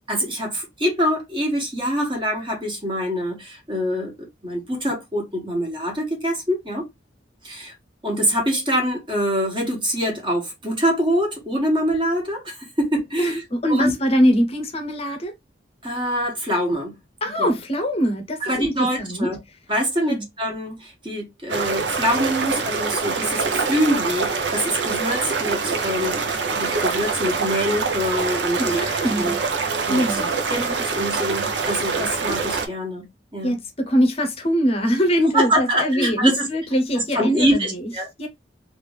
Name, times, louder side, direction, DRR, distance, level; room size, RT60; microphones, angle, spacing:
voice 1, 0.1-6.8 7.4-7.7 8.0-13.4 13.7-13.9 15.8-17.0 17.4-17.5 18.4-19.4 19.7-26.2 26.5-28.8 29.2-29.4 29.9-30.2 30.5-33.6 35.3-36.5 37.1-38.1, equal, 30° right, 1.3 m, -24 dB
voice 2, 13.2-15.3 17.2-19.3 20.0-20.2 28.6-29.4 29.9-30.3 33.4-37.9 38.2-38.3, equal, 35° left, 0.7 m, -22 dB
sound 1, 21.5-32.7, right 4 dB, 75° right, 0.7 m, -25 dB
3.2 x 2.5 x 3.3 m
head